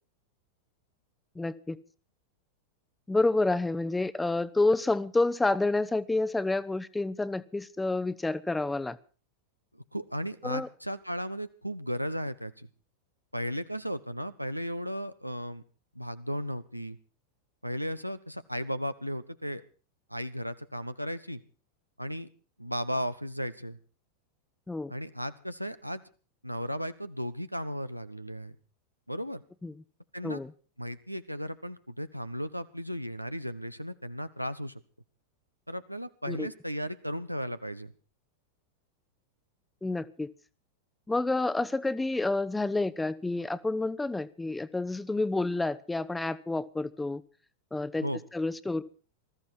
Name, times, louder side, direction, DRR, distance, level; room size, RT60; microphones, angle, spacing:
voice 1, 1.3-1.8 3.1-9.0 10.4-10.7 24.7-24.9 29.6-29.7 30.2-30.5 36.3-36.5 39.8-40.3 41.1-47.2 47.7-48.1 48.3-48.8, left 2 dB, 10° left, 15 dB, 0.9 m, -29 dB
voice 2, 9.7-12.7 13.3-15.6 15.9-17.0 17.6-19.6 20.1-21.4 22.0-22.3 22.6-23.8 24.9-26.0 26.4-28.6 29.1-29.4 30.1-30.4 30.8-34.7 35.7-37.9 48.0-48.2, equal, 90° right, 12 dB, 1.0 m, -35 dB
20.0 x 14.0 x 4.4 m, 0.37 s
figure-of-eight pair, 90°, 0 cm